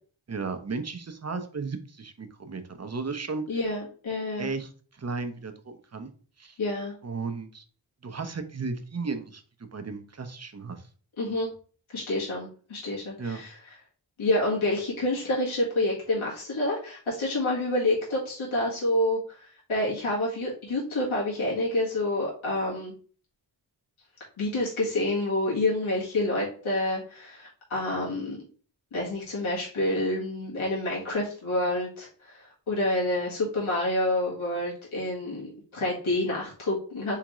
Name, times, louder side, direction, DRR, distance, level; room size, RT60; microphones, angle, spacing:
voice 1, 0.3-3.4 4.4-6.1 6.4-6.6 7.0-7.6 8.0-9.4 9.7-10.8 13.2-13.4, right 4 dB, 35° right, 8 dB, 0.8 m, -34 dB
voice 2, 3.5-4.5 6.6-6.9 11.2-11.5 11.9-13.6 14.2-22.9 24.4-28.4 28.9-37.2, left 1 dB, 80° left, -5 dB, 1.7 m, -28 dB
3.7 x 3.5 x 3.0 m, 0.42 s
cardioid pair, 45°, 48 cm